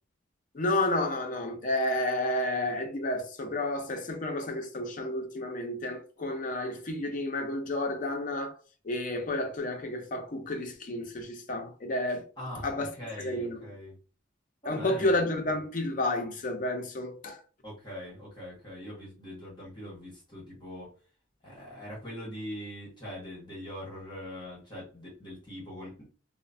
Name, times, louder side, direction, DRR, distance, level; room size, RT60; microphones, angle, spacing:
voice 1, 0.5-8.6 8.8-12.3 12.6-12.9 13.2-13.6 14.7-17.4, left 1 dB, 40° left, 0.5 m, -31 dB
voice 2, 12.4-13.9 14.6-15.1 17.6-20.9 21.4-26.0, equal, 25° left, 1.2 m, -42 dB
3.0 x 2.1 x 2.5 m
head